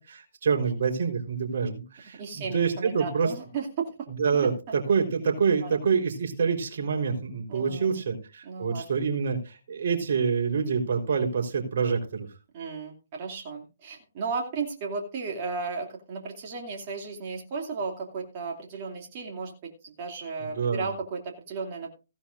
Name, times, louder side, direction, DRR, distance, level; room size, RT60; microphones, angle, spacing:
voice 1, 0.0-3.3 4.1-12.3 20.4-20.9, right 5 dB, 60° right, 2 dB, 3.9 m, -27 dB
voice 2, 2.1-3.9 4.4-4.7 5.6-5.7 7.5-7.9 8.4-8.9 12.5-21.9, right 4 dB, 40° right, 1 dB, 2.5 m, -35 dB
16.5 x 11.5 x 2.5 m, 0.31 s
figure-of-eight pair, 135°, 0 cm